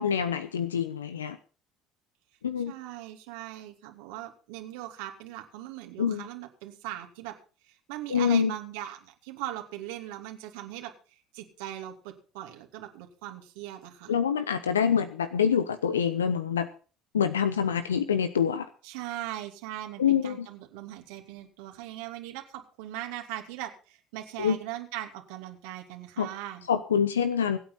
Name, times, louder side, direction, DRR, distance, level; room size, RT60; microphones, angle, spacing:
voice 1, 0.0-1.4 2.4-2.7 6.0-6.2 8.1-8.5 14.1-16.7 17.1-18.7 20.0-20.5 24.4-24.5 26.2-26.3 26.7-27.6, left 7 dB, 85° left, 12 dB, 0.8 m, -26 dB
voice 2, 2.7-7.4 7.6-14.1 18.8-26.7, right 13 dB, 70° right, 3 dB, 2.7 m, -40 dB
24.5 x 8.7 x 4.0 m, 0.37 s
figure-of-eight pair, 60°, 0 cm